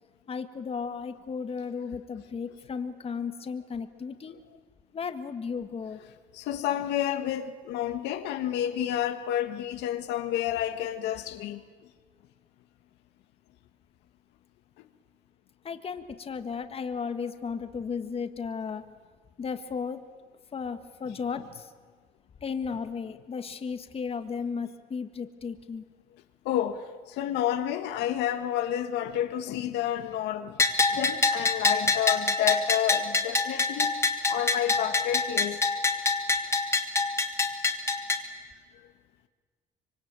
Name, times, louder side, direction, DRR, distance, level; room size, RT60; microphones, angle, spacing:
voice 1, 0.3-4.4 4.9-6.0 15.6-18.8 19.4-20.0 20.5-21.7 22.4-25.8, left 5 dB, 35° left, 1.6 m, -34 dB
voice 2, 6.3-11.6 14.8-14.9 26.4-30.6 30.9-35.7, left 11 dB, 90° left, 1.6 m, -30 dB
Bell, 30.6-38.2, left 3 dB, 15° left, 2.7 m, -25 dB
25.5 x 24.0 x 9.0 m
cardioid pair, 110°, 17 cm